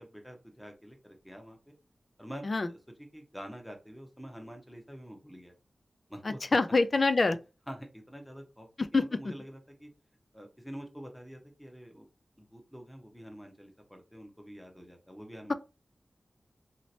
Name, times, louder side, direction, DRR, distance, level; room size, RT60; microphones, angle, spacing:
voice 1, 0.0-1.7 2.2-2.8 3.1-5.5 6.1-6.4 7.7-8.7 8.9-9.9 10.3-12.1 12.4-15.5, equal, 5° left, 0.9 m, -47 dB
voice 2, 6.2-7.4 8.8-9.2, left 3 dB, 50° left, 0.4 m, -26 dB
3.1 x 2.8 x 2.7 m
wide cardioid pair, 85°, 0 cm